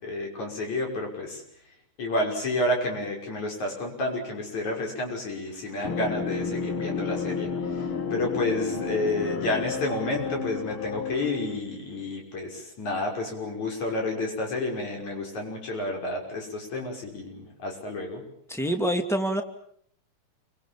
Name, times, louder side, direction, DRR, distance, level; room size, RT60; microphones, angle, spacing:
voice 1, 0.0-1.4 2.0-7.5 8.1-18.2, left 2 dB, 60° left, 1 dB, 7.3 m, -30 dB
sound 1, 5.8-11.6, left 5 dB, 45° left, 2.3 m, -31 dB
voice 2, 18.5-19.4, right 1 dB, ahead, 5 dB, 1.7 m, -26 dB
27.5 x 24.5 x 7.3 m, 0.67 s
omnidirectional pair, 3.6 m